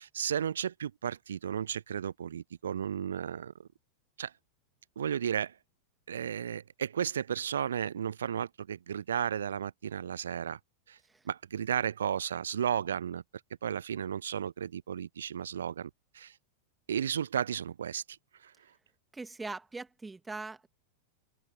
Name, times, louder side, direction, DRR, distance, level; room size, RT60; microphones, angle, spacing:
voice 1, 0.0-3.5 4.2-4.3 5.0-5.5 6.1-10.6 10.9-11.0 11.3-13.2 13.6-15.9 16.1-16.4 16.9-18.2 18.4-18.5, right 8 dB, 65° right, 0.5 m, -33 dB
voice 2, 19.1-20.7, right 3 dB, 10° right, 2.3 m, -41 dB
open air
figure-of-eight pair, 90°, 0 cm